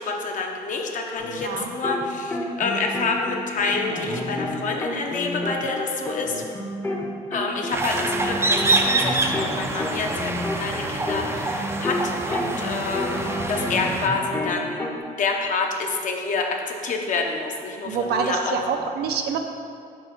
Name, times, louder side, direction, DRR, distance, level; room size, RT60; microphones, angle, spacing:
voice 1, 0.0-6.4 7.3-14.8 15.2-18.6, left 4 dB, 50° left, 2 dB, 0.8 m, -28 dB
sound 1, 1.2-2.0 2.3-7.0 7.3-12.1 12.3-15.0, left 1 dB, 15° left, 0.8 m, -30 dB
sound 2, 7.7-14.1, right 3 dB, 15° right, 0.5 m, -26 dB
voice 2, 17.8-19.4, right 6 dB, 70° right, 4 dB, 0.6 m, -26 dB
4.7 x 4.5 x 5.8 m, 2.3 s
cardioid pair, 110°, 17 cm